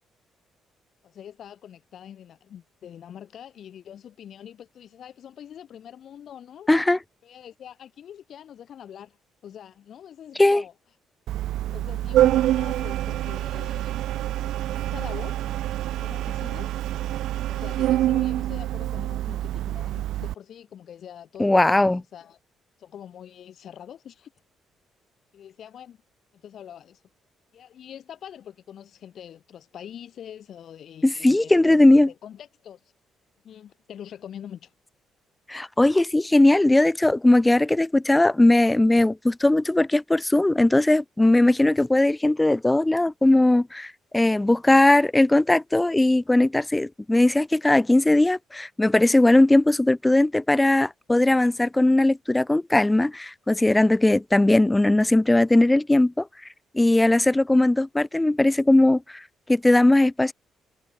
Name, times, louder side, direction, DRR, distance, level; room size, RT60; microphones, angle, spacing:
voice 1, 1.0-6.7 7.2-9.2 9.4-10.7 11.7-13.9 14.7-15.4 15.9-16.7 17.5-22.4 22.8-24.3 25.3-26.0 26.3-27.0 27.5-31.8 32.1-32.8 33.4-34.7, left 9 dB, 60° left, 4.6 m, -44 dB
voice 2, 6.7-7.0 10.4-10.6 21.4-22.0 31.0-32.1 35.5-56.3 56.7-59.2 59.5-60.3, left 2 dB, 10° left, 0.7 m, -19 dB
Organ, 11.3-20.3, right 13 dB, 80° right, 0.5 m, -26 dB
cardioid pair, 95°, 0 cm